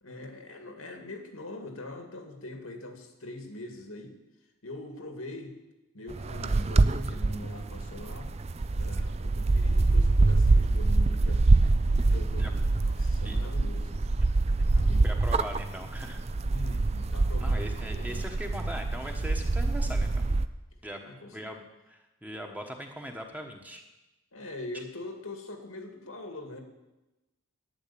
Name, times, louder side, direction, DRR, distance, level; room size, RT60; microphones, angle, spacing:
voice 1, 0.0-4.1 4.6-5.5 5.9-8.3 8.8-11.5 12.1-14.0 14.7-15.1 16.4-18.3 21.0-21.4 24.3-26.6, left 2 dB, 85° left, 5 dB, 2.3 m, -43 dB
sound 1, 6.1-20.5, right 2 dB, 30° right, 0.4 m, -25 dB
voice 2, 13.0-13.4 15.0-16.2 17.4-20.3 20.8-21.0 21.3-23.8 24.7-24.8, equal, 5° right, 3 dB, 1.2 m, -40 dB
11.5 x 9.5 x 8.6 m, 1.0 s
head